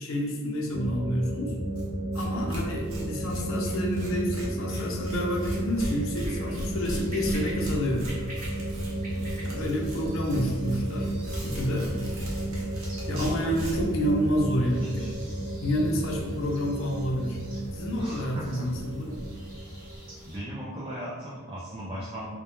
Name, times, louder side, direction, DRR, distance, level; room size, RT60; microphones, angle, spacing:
voice 1, 0.0-1.5 2.1-8.0 9.4-11.1 11.4-11.9 13.0-15.0 15.6-17.4 17.7-19.2, equal, 70° left, 0 dB, 0.5 m, -29 dB
sound 1, 0.7-20.2, right 1 dB, 30° left, 0.9 m, -33 dB
Tearing, 1.8-1.9 2.1-2.2 2.5-13.9, equal, 70° right, 0.7 m, -39 dB
voice 2, 2.5-2.8 9.1-9.4 13.1-13.5 14.5-15.1 18.0-18.7 20.2-22.3, right 1 dB, 25° right, -7 dB, 0.3 m, -38 dB
sound 2, 4.8-20.4, equal, 40° right, 0.9 m, -47 dB
2.2 x 2.1 x 2.9 m, 1.3 s
head